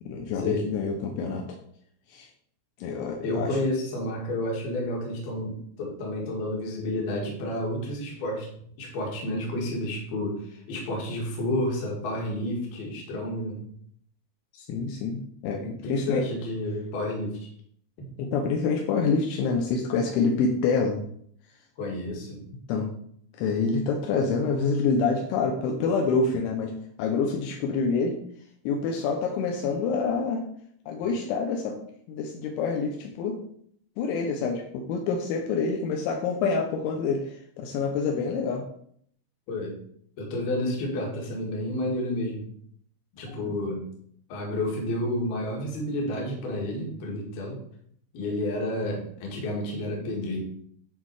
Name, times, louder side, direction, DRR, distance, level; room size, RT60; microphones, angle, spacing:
voice 1, 0.0-1.4 2.1-2.3 2.8-3.6 14.5-16.2 18.2-21.0 22.7-22.9 23.4-26.7 27.0-28.2 28.7-30.5 30.9-31.8 32.1-33.4 34.0-38.6 43.3-43.5, left 4 dB, 80° left, 2 dB, 3.1 m, -27 dB
voice 2, 3.2-8.5 8.8-13.6 15.8-17.5 18.0-18.1 21.8-22.4 39.5-39.8 40.2-42.5 43.1-43.9 44.3-47.6 48.1-50.4, left 1 dB, 60° left, -1 dB, 3.4 m, -30 dB
11.0 x 4.3 x 4.7 m, 0.65 s
omnidirectional pair, 5.8 m